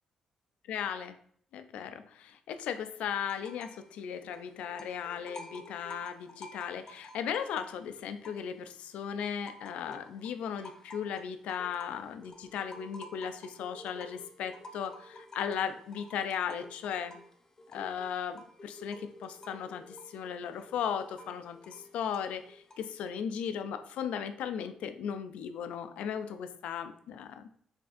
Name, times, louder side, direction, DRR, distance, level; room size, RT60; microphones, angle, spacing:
voice 1, 0.7-1.2 1.5-17.2 17.7-27.4, left 8 dB, 85° left, 9 dB, 0.3 m, -37 dB
sound 1, 3.2-3.9 4.1-8.8 9.2-23.0, left 1 dB, 25° left, 0.5 m, -51 dB
4.1 x 3.4 x 2.4 m, 0.62 s
cardioid pair, 105°, 2 cm